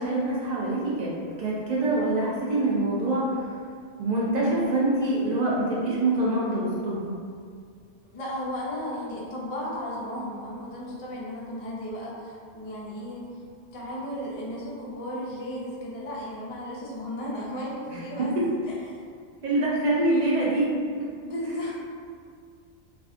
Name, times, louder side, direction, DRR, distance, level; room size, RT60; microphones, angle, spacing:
voice 1, 0.0-3.5 4.0-7.2 17.9-18.4 19.4-21.1, right 2 dB, 65° right, -5 dB, 0.4 m, -25 dB
voice 2, 8.0-13.3 13.7-18.3 18.9-19.0 21.2-21.7, equal, 65° left, -5 dB, 0.3 m, -34 dB
2.6 x 2.2 x 2.4 m, 2.1 s
omnidirectional pair, 1.2 m